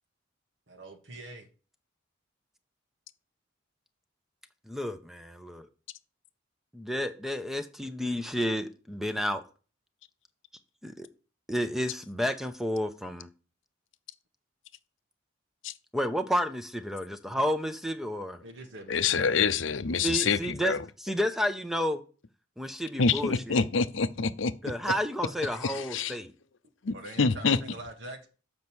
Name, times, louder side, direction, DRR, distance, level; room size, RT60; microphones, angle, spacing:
voice 1, 0.7-1.5 18.4-19.3 25.2-25.3 26.9-28.3, right 2 dB, 70° right, 1.5 m, -44 dB
voice 2, 4.7-5.7 6.7-9.4 10.8-11.1 11.5-13.3 15.9-18.4 20.0-22.0 22.6-23.6 24.6-26.3, equal, ahead, 0.7 m, -31 dB
voice 3, 18.9-20.8 23.0-24.5 25.6-26.1 26.8-27.6, left 5 dB, 70° left, 0.6 m, -26 dB
7.3 x 5.3 x 6.2 m
head